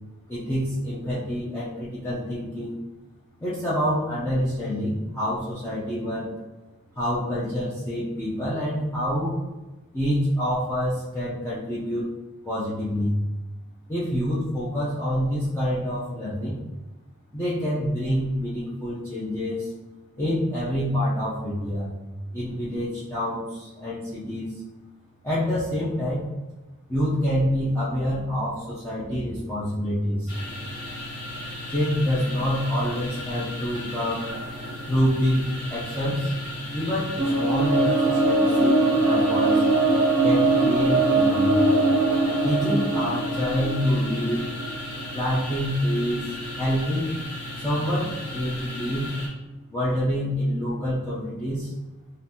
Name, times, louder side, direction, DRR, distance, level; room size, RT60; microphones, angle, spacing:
voice 1, 0.3-2.8 3.4-6.3 7.0-9.4 9.9-12.1 12.4-13.2 13.9-16.6 17.3-19.7 20.2-21.9 22.3-24.5 25.2-26.2 26.9-30.3 31.7-34.3 34.9-36.3 36.7-39.6 40.2-41.5 42.4-44.5 45.1-47.1 47.6-49.1 49.7-51.7, equal, 10° left, -10 dB, 0.5 m, -27 dB
sound 1, 30.3-49.3, left 1 dB, 50° left, 0.9 m, -36 dB
sound 2, 37.2-45.3, right 2 dB, 55° right, 0.6 m, -21 dB
3.7 x 2.5 x 2.7 m, 1.1 s
head